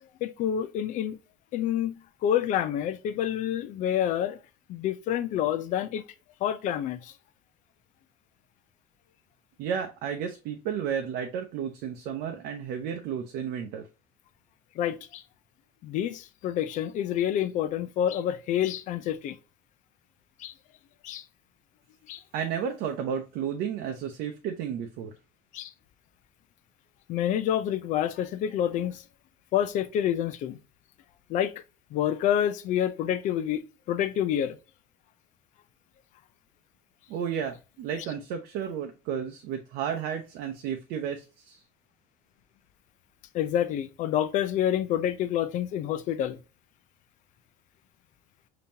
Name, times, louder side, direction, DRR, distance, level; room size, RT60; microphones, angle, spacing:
voice 1, 0.2-1.2 1.5-4.4 4.7-6.0 6.4-7.1 14.8-15.2 15.8-19.4 20.4-20.5 21.0-21.2 22.1-22.2 25.5-25.7 27.1-29.0 29.5-30.6 31.3-31.5 31.9-33.6 33.9-34.6 43.3-46.4, left 10 dB, 55° left, 0.5 m, -28 dB
voice 2, 9.6-13.8 22.3-25.1 37.1-41.6, right 8 dB, 75° right, 0.6 m, -32 dB
5.3 x 2.9 x 2.7 m
cardioid pair, 160°, 15 cm